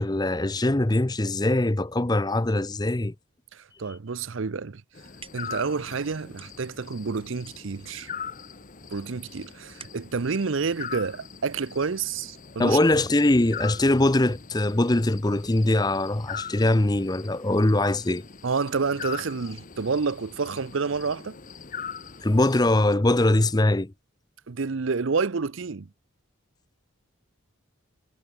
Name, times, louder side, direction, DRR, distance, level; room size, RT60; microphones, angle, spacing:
voice 1, 0.0-3.1 12.6-18.2 22.2-23.9, left 1 dB, 20° left, 0.7 m, -22 dB
voice 2, 3.5-4.8 5.3-8.1 8.9-12.8 18.4-21.4 24.5-25.9, right 4 dB, 65° right, 0.6 m, -29 dB
sound 1, 4.8-11.6, right 7 dB, 25° right, 8.0 m, -53 dB
sound 2, 4.9-23.0, left 6 dB, 40° left, 1.1 m, -42 dB
head